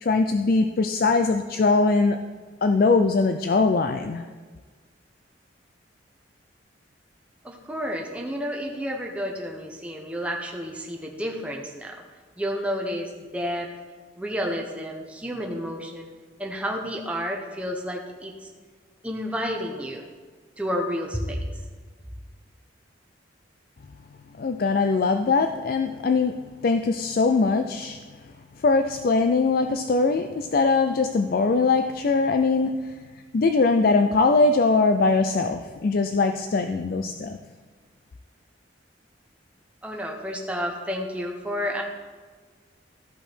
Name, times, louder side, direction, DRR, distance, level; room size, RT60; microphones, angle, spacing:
voice 1, 0.0-2.2 2.6-4.3 24.4-26.3 26.6-28.0 28.6-33.0 33.3-37.4, left 3 dB, 50° left, 7 dB, 0.4 m, -21 dB
voice 2, 7.4-12.0 12.4-13.7 14.2-16.1 16.4-18.5 19.0-20.1 20.6-21.5 39.8-41.8, equal, 5° right, 0 dB, 0.8 m, -30 dB
13.5 x 5.5 x 4.4 m, 1.4 s
head